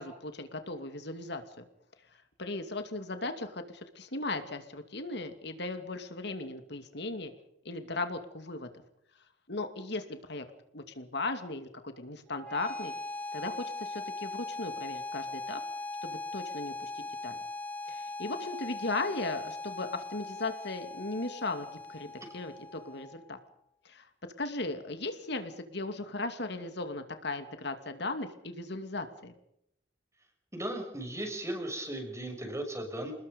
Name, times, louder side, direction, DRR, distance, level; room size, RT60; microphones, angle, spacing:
voice 1, 0.0-1.4 2.4-7.3 7.6-8.7 9.5-10.4 10.7-12.9 13.3-15.6 16.0-17.4 17.9-23.4 23.8-24.1 24.4-29.3, left 2 dB, 65° left, 7 dB, 2.5 m, -37 dB
sound 1, 12.3-23.3, left 2 dB, 10° left, 3.6 m, -40 dB
voice 2, 30.5-33.1, right 1 dB, 15° right, 4 dB, 6.2 m, -36 dB
29.0 x 20.5 x 5.4 m, 0.77 s
head